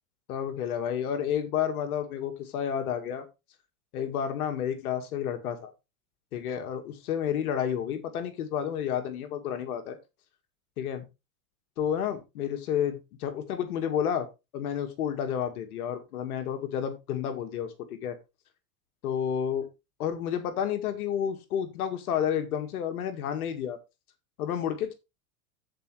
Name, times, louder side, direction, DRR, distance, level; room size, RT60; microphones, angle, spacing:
voice 1, 0.3-3.3 3.9-5.7 6.3-10.0 10.8-11.0 11.8-14.3 14.5-17.7 18.0-18.2 19.0-19.7 20.0-23.8 24.4-24.9, left 9 dB, 75° left, 7 dB, 2.0 m, -30 dB
14.0 x 5.1 x 3.3 m, 0.25 s
hypercardioid pair, 110°, 44 cm